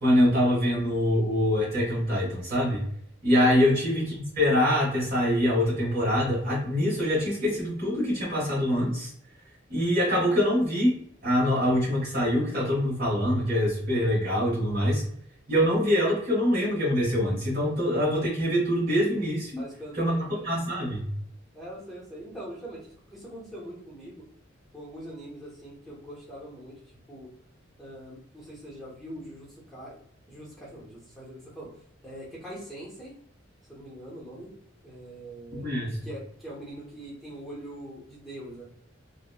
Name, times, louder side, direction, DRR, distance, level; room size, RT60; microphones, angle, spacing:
voice 1, 0.0-2.8 3.2-9.1 9.7-15.0 15.5-19.7 19.9-21.1 35.5-36.0, equal, 50° right, -6 dB, 1.1 m, -24 dB
voice 2, 19.6-20.5 21.5-24.2 24.7-26.7 27.1-27.3 27.8-30.0 30.3-33.1 33.7-34.5 34.8-35.7 36.0-38.6, right 1 dB, ahead, -6 dB, 0.7 m, -42 dB
3.0 x 2.0 x 2.2 m, 0.67 s
head